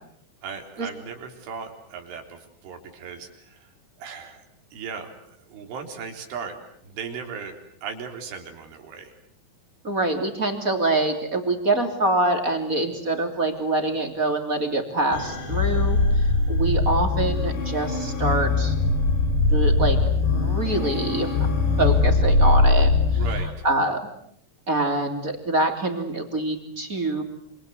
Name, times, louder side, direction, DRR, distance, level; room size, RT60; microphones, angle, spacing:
voice 1, 0.4-3.7 4.0-4.4 4.7-6.6 6.8-9.1 23.1-23.5, right 6 dB, 90° right, 4 dB, 6.2 m, -37 dB
voice 2, 9.8-18.7 19.5-20.0 20.3-21.3 21.8-22.9 23.6-24.0 24.7-27.2, right 2 dB, 20° right, 5 dB, 2.9 m, -25 dB
sound 1, 15.1-23.4, left 3 dB, 60° left, 7.3 m, -21 dB
27.5 x 26.5 x 8.1 m, 0.67 s
omnidirectional pair, 5.4 m